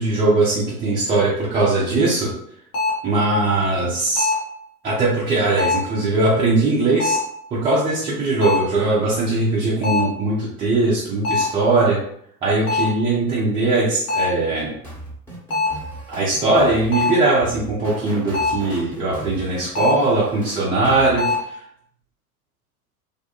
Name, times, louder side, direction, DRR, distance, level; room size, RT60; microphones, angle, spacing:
voice 1, 0.0-2.3 3.0-4.3 4.8-7.2 7.5-12.0 12.4-14.7 16.1-21.6, right 2 dB, 15° right, -8 dB, 0.4 m, -20 dB
sound 1, 2.7-3.1 4.2-4.6 5.6-6.0 7.0-7.4 8.4-8.8 9.8-10.2 11.2-11.6 12.7-13.0 14.1-14.4 15.5-15.9 16.9-17.3 18.3-18.7 19.7-20.1 21.2-21.4, left 3 dB, 70° left, 1.0 m, -23 dB
sound 2, 14.8-21.5, right 1 dB, 5° left, 0.8 m, -37 dB
2.5 x 2.1 x 2.8 m, 0.68 s
figure-of-eight pair, 80°, 46 cm